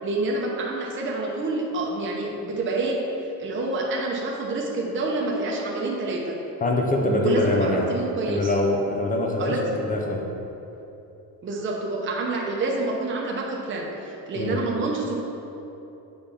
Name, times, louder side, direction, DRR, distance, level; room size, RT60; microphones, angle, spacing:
voice 1, 0.0-3.0 3.4-6.4 7.0-8.5 9.4-9.7 11.4-15.2, right 2 dB, 30° right, -2 dB, 0.7 m, -27 dB
voice 2, 6.6-7.9 8.3-10.3 14.4-14.6, left 2 dB, 20° left, 0 dB, 0.4 m, -24 dB
7.1 x 3.4 x 5.6 m, 2.9 s
cardioid pair, 180°, 39 cm